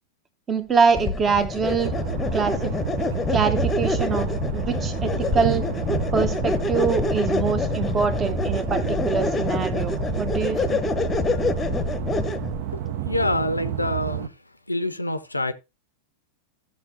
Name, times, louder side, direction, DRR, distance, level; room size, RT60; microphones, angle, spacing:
voice 1, 0.5-1.9 2.3-2.7 3.3-5.6 6.1-10.8, right 5 dB, 20° right, 1.0 m, -24 dB
sound 1, 0.9-12.6, left 4 dB, 15° left, 0.9 m, -26 dB
sound 2, 1.8-14.3, right 11 dB, 50° right, 0.6 m, -30 dB
voice 2, 12.7-14.3 14.7-15.5, left 1 dB, 85° left, 0.5 m, -26 dB
15.5 x 6.1 x 2.7 m
figure-of-eight pair, 90°, 0 cm